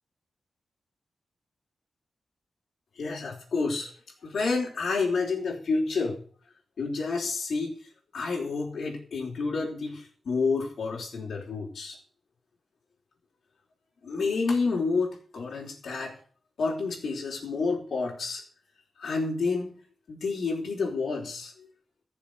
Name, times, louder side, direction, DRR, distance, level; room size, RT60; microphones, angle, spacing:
voice 1, 3.0-3.9 4.2-6.2 6.8-7.8 8.1-12.0 14.0-16.1 16.6-18.4 19.0-19.8 20.1-21.7, left 4 dB, 70° left, -3 dB, 4.3 m, -29 dB
15.0 x 7.2 x 8.1 m, 0.43 s
cardioid pair, 80°, 0 cm